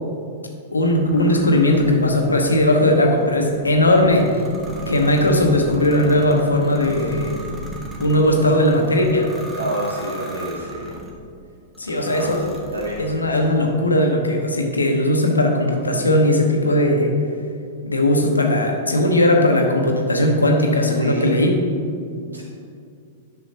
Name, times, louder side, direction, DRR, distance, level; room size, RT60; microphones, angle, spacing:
voice 1, 0.7-4.3 4.9-7.3 8.0-9.3 11.8-12.4 13.0-17.1 17.8-21.5, left 1 dB, 85° left, 2 dB, 1.0 m, -18 dB
sound 1, 0.9-11.2 11.7-13.4, right 1 dB, 10° right, 1.2 m, -36 dB
voice 2, 4.6-4.9 9.6-11.0 11.8-13.5 21.0-21.3 22.2-22.4, right 1 dB, 85° right, -3 dB, 1.8 m, -29 dB
10.5 x 6.2 x 2.9 m, 2.4 s
figure-of-eight pair, 100°, 0 cm